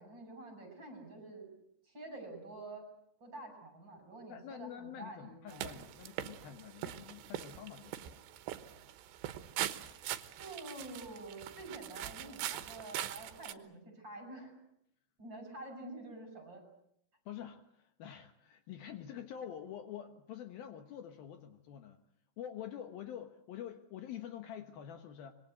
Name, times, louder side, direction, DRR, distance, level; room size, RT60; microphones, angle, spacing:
voice 1, 0.0-1.5 1.8-2.9 3.2-5.6 10.4-14.6 15.2-16.6, right 2 dB, 25° right, 5 dB, 6.8 m, -48 dB
voice 2, 4.3-8.2 17.3-22.0 22.4-25.3, left 9 dB, 70° left, 7 dB, 2.8 m, -47 dB
sound 1, 5.5-13.5, right 12 dB, 90° right, 3.4 m, -42 dB
26.0 x 22.5 x 7.9 m, 0.75 s
omnidirectional pair, 4.9 m